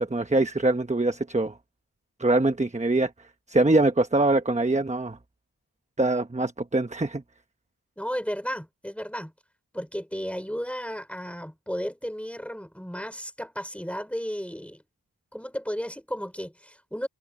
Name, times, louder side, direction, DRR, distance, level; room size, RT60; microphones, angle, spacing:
voice 1, 0.0-1.5 2.2-3.1 3.5-5.2 6.0-7.2, right 2 dB, 15° right, 1.0 m, -23 dB
voice 2, 8.0-9.3 9.7-14.8 15.3-17.1, equal, 5° left, 3.9 m, -34 dB
wide cardioid pair, 65°, 40 cm